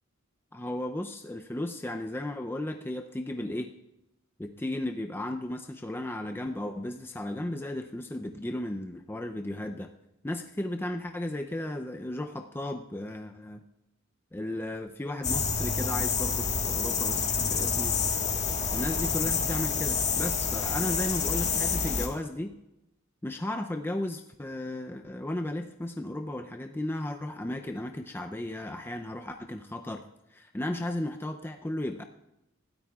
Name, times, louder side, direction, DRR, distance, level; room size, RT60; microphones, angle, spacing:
voice 1, 0.5-3.7 4.4-9.9 10.2-13.6 14.3-18.0 18.7-22.5 23.2-30.0 30.3-32.0, left 1 dB, 10° left, 4 dB, 0.5 m, -35 dB
sound 1, 15.2-22.1, left 5 dB, 35° left, 1.5 m, -28 dB
25.0 x 13.0 x 2.4 m, 0.91 s
head